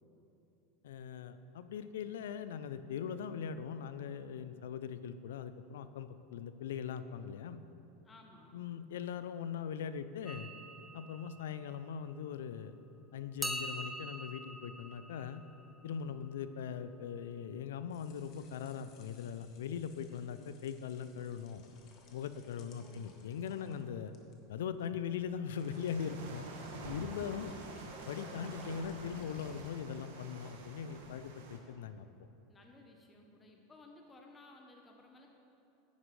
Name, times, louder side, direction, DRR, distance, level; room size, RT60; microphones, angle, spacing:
voice 1, 0.8-7.6 8.5-10.5 10.9-12.7 13.1-15.4 15.8-21.6 22.1-24.1 24.5-26.5 26.8-27.5 28.1-32.1, left 7 dB, 90° left, 12 dB, 0.4 m, -40 dB
voice 2, 8.0-8.6 22.7-23.1 32.5-35.3, left 2 dB, 20° left, 2 dB, 0.8 m, -58 dB
sound 1, 10.3-12.7 13.4-17.3, right 1 dB, 5° right, 0.5 m, -45 dB
sound 2, 17.7-30.0, left 4 dB, 50° left, 1.1 m, -63 dB
sound 3, 25.5-31.6, right 3 dB, 85° right, 1.1 m, -48 dB
9.6 x 9.4 x 3.2 m, 2.9 s
supercardioid pair, 125°, 0 cm